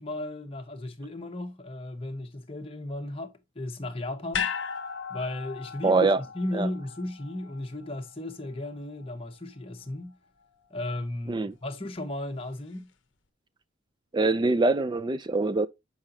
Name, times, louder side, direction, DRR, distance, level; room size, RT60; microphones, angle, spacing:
voice 1, 0.0-4.5 5.1-10.1 10.7-12.9, left 1 dB, 25° left, 0.9 m, -35 dB
sound 1, 4.3-8.7 9.0-9.1, left 7 dB, 60° left, 0.8 m, -36 dB
voice 2, 5.8-6.2 6.5-6.7 11.3-11.5 14.1-15.7, right 3 dB, 20° right, 0.3 m, -24 dB
7.3 x 4.9 x 2.6 m
head